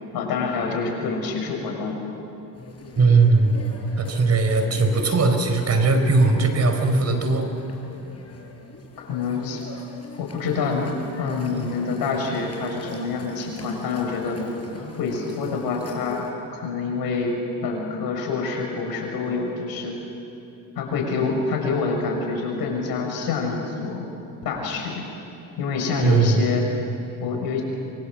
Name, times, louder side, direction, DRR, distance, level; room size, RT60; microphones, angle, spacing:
voice 1, 0.1-2.0 9.1-9.6 10.2-10.9 11.2-14.4 15.0-16.2 16.5-17.3 17.6-20.0 20.7-24.1 24.4-25.0 25.6-26.6 27.2-27.6, left 4 dB, 70° left, 1 dB, 6.5 m, -26 dB
sound 1, 2.5-16.3, left 3 dB, 40° left, 5.8 m, -42 dB
voice 2, 3.0-3.6 4.0-7.5 26.0-26.5, right 3 dB, 40° right, 6 dB, 4.5 m, -19 dB
24.5 x 24.5 x 7.7 m, 2.8 s
supercardioid pair, 65°, 38 cm